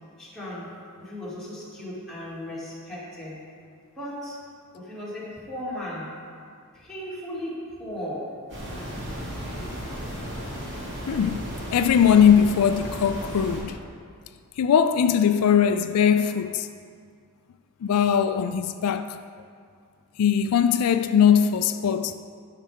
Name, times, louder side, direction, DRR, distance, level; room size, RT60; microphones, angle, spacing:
voice 1, 0.2-3.4 4.0-4.4 4.7-6.2 6.7-8.4, left 1 dB, ahead, 2.2 m, -36 dB
sound 1, 8.5-13.6, equal, 55° right, 2.2 m, -34 dB
voice 2, 11.1-11.4 11.7-13.8 14.6-16.7 17.8-19.2 20.2-22.1, left 8 dB, 80° left, 0.3 m, -20 dB
12.5 x 5.7 x 3.5 m
head